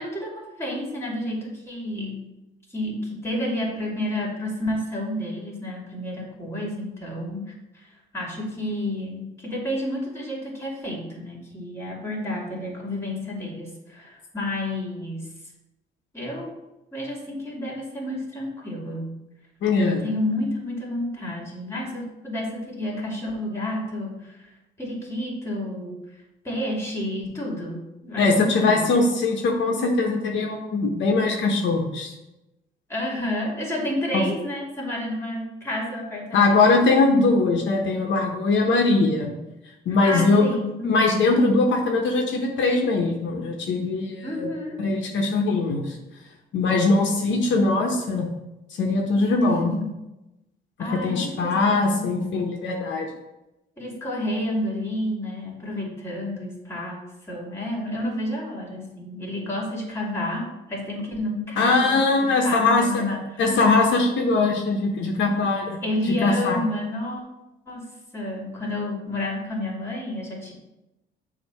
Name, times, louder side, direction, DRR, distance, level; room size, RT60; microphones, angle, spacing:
voice 1, 0.0-2.3 2.7-7.9 8.1-15.3 16.1-16.5 16.9-19.1 19.8-24.4 24.8-26.0 26.4-28.9 32.9-36.7 40.0-41.2 44.2-44.8 49.4-49.7 50.8-52.1 53.8-63.4 65.8-67.2 67.7-67.8 68.1-70.5, left 1 dB, 15° left, -2 dB, 2.4 m, -30 dB
voice 2, 19.6-20.0 28.2-32.1 34.1-34.2 36.3-39.3 39.9-40.4 40.8-44.5 44.8-46.0 46.5-48.3 48.8-49.7 51.0-53.1 61.6-63.0 63.4-65.8 66.1-66.6, left 3 dB, 70° left, 1 dB, 1.0 m, -21 dB
7.0 x 2.9 x 5.7 m, 0.94 s
cardioid pair, 90°, 20 cm